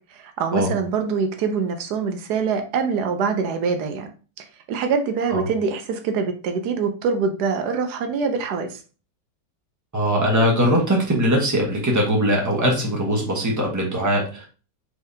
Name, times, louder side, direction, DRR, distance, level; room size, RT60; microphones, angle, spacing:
voice 1, 0.1-4.1 4.4-8.8, right 5 dB, 75° right, 6 dB, 1.1 m, -24 dB
voice 2, 9.9-14.5, equal, 15° right, -2 dB, 1.0 m, -21 dB
4.6 x 3.5 x 2.7 m, 0.36 s
omnidirectional pair, 1.8 m